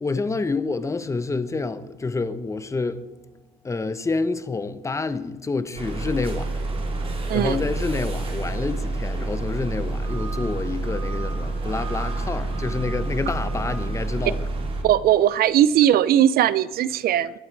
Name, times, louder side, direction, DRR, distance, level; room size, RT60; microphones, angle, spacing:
voice 1, 0.0-3.0 3.6-6.5 7.3-14.4, left 3 dB, 15° left, 1.0 m, -28 dB
sound 1, 5.8-14.8, right 2 dB, 35° right, 3.5 m, -28 dB
voice 2, 7.3-7.6 14.8-17.3, right 11 dB, 65° right, 0.6 m, -19 dB
24.0 x 11.5 x 4.7 m
cardioid pair, 110°, 17 cm